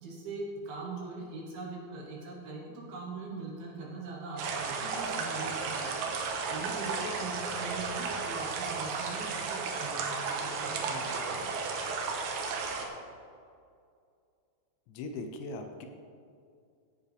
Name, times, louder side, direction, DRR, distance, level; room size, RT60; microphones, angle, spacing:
voice 1, 0.0-6.1 6.5-11.4, right 3 dB, 65° right, -2 dB, 2.7 m, -41 dB
sound 1, 4.4-12.9, right 4 dB, 85° right, 3.6 m, -34 dB
voice 2, 15.0-15.9, left 3 dB, 80° left, 5 dB, 2.9 m, -39 dB
17.0 x 9.0 x 3.4 m, 2.4 s
omnidirectional pair, 5.4 m